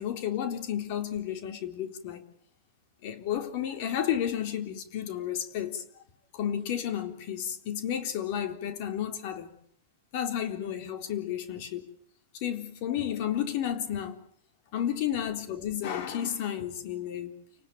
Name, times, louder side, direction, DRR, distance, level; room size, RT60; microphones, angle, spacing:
voice 1, 0.0-2.2 3.0-5.8 6.3-9.5 10.1-11.9 12.3-14.2 14.7-17.4, left 10 dB, 50° left, 3.7 m, -32 dB
29.5 x 19.0 x 9.3 m
supercardioid pair, 145°, 0 cm